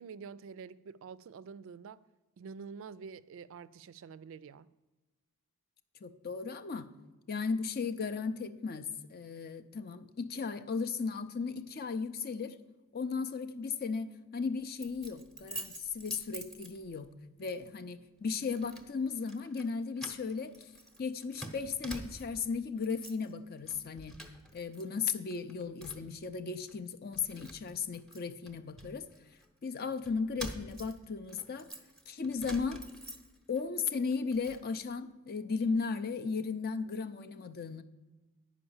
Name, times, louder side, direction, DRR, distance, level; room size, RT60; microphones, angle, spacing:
voice 1, 0.0-2.0 2.4-4.7, right 5 dB, 60° right, 0.3 m, -47 dB
voice 2, 6.0-6.9 7.3-12.6 12.9-17.1 17.4-20.7 21.0-24.2 24.5-29.1 29.6-31.7 32.1-32.9 33.5-37.8, left 5 dB, 45° left, 0.5 m, -36 dB
Keys jangling, 14.8-17.1 17.5-17.7 18.3-18.9 19.2-19.7 20.0-22.4 22.8-23.3 23.6-24.8 25.1-26.2 26.7-26.8 27.1-29.5 30.0-33.6 34.0-34.6, right 1 dB, ahead, 0.8 m, -47 dB
9.8 x 5.0 x 7.0 m
head